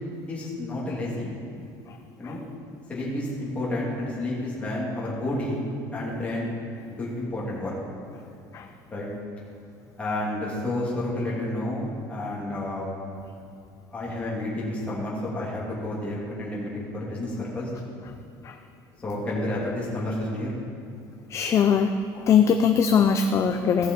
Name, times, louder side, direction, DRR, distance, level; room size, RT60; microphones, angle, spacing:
voice 1, 0.3-1.3 2.2-2.4 2.9-5.6 5.9-6.5 7.0-7.7 8.9-9.1 10.0-12.9 13.9-17.7 19.0-20.5, left 1 dB, 15° left, -6 dB, 2.7 m, -30 dB
voice 2, 21.3-21.9 22.3-23.9, left 7 dB, 35° left, 7 dB, 0.5 m, -20 dB
15.5 x 6.9 x 4.6 m, 2.6 s
cardioid pair, 145°, 9 cm